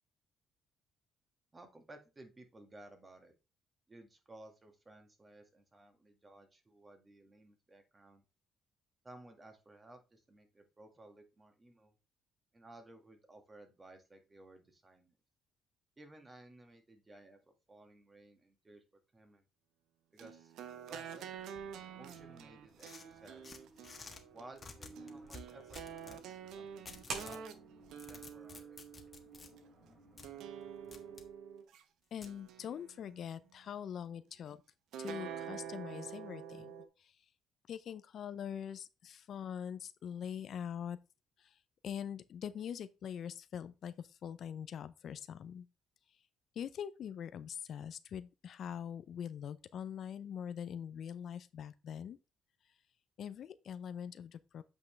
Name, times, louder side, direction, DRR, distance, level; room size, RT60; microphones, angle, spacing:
voice 1, 1.5-3.3 3.9-8.2 9.0-11.9 12.5-15.1 16.0-18.8 19.1-19.4 20.1-20.5 20.9-21.4 21.9-23.7 24.3-27.5 27.9-28.8, right 2 dB, 25° right, 1.9 m, -57 dB
sound 1, 20.2-29.6 30.2-31.8 32.3-33.4 34.9-36.9, right 8 dB, 80° right, 1.0 m, -48 dB
sound 2, 21.3-31.2, right 3 dB, 60° right, 3.8 m, -53 dB
sound 3, 22.8-24.2 24.6-26.2 26.9-27.4 27.8-29.5 30.2-30.3 30.9-31.3 32.2-32.4, left 4 dB, 30° left, 1.5 m, -52 dB
voice 2, 32.1-34.6 35.0-36.7 37.0-37.2 37.7-41.0 41.4-41.6 41.8-45.7 46.5-52.2 53.2-54.6, left 8 dB, 60° left, 0.5 m, -43 dB
8.3 x 5.4 x 3.3 m
cardioid pair, 95°, 0 cm